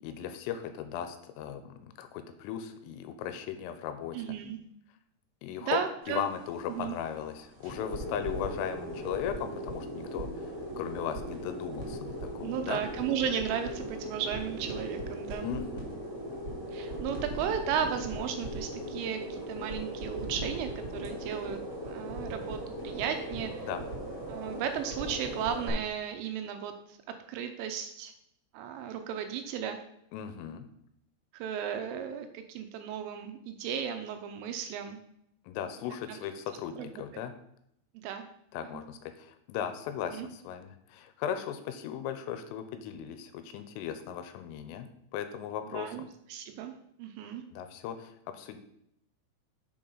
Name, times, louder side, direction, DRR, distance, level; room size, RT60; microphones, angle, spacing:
voice 1, 0.0-4.2 5.4-5.8 6.1-10.4 10.8-12.8 15.4-15.8 23.6-23.9 30.1-30.7 35.5-37.3 38.5-46.1 47.5-48.6, left 9 dB, 80° left, 8 dB, 3.1 m, -37 dB
voice 2, 4.1-4.6 5.6-6.3 6.7-7.0 12.4-15.5 16.7-23.7 24.3-28.1 28.5-29.8 31.3-35.0 36.1-36.3 36.8-36.9 37.9-38.3 38.6-38.8 40.1-40.3 45.7-46.0 46.3-46.7 47.0-47.4, right 8 dB, 80° right, 7 dB, 3.0 m, -35 dB
sound 1, 6.0-25.7, right 1 dB, 35° right, 2.1 m, -39 dB
7.0 x 5.4 x 5.4 m, 0.75 s
omnidirectional pair, 6.0 m